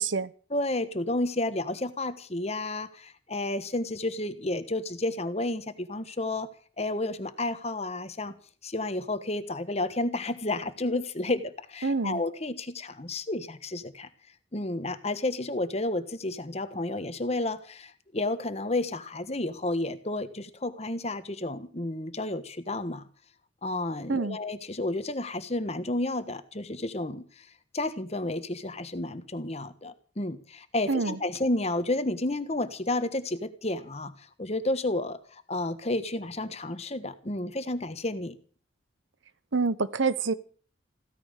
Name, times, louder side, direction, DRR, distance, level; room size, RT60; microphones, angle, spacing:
voice 1, 0.0-0.3 11.8-12.2 24.1-24.4 30.9-31.2 39.5-40.3, right 4 dB, 85° right, 1.0 m, -27 dB
voice 2, 0.5-6.5 6.8-8.3 8.6-14.1 14.5-23.0 23.6-27.4 27.7-38.3, left 2 dB, 35° left, 1.3 m, -31 dB
16.0 x 13.5 x 6.6 m
head